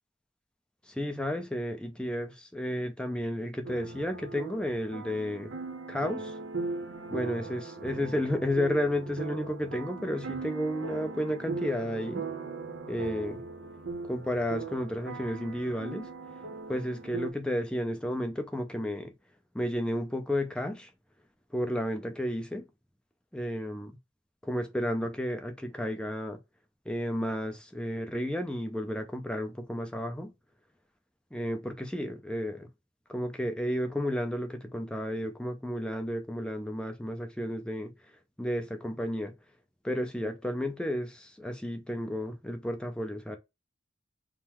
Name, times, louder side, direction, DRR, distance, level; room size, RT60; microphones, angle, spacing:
voice 1, 0.9-5.5 5.9-6.4 7.1-12.2 12.9-13.4 14.1-16.1 16.7-19.1 19.5-20.9 21.5-22.6 23.3-23.9 24.4-26.4 26.9-30.3 31.3-32.7 33.1-37.9 38.4-39.3 39.8-43.4, equal, 5° left, 0.6 m, -32 dB
sound 1, 3.6-17.3, right 4 dB, 70° right, 0.7 m, -39 dB
3.7 x 2.1 x 4.3 m
head